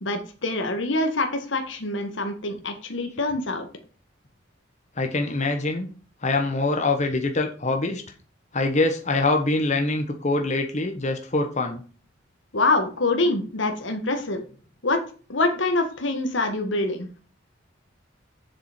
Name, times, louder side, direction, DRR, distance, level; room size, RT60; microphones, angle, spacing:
voice 1, 0.0-3.7 12.5-14.4 14.8-15.0 15.3-17.1, left 2 dB, 70° left, 5 dB, 1.7 m, -25 dB
voice 2, 5.0-5.9 6.2-8.0 8.5-11.8, left 2 dB, 35° left, 4 dB, 1.2 m, -24 dB
7.4 x 7.0 x 5.1 m, 0.38 s
head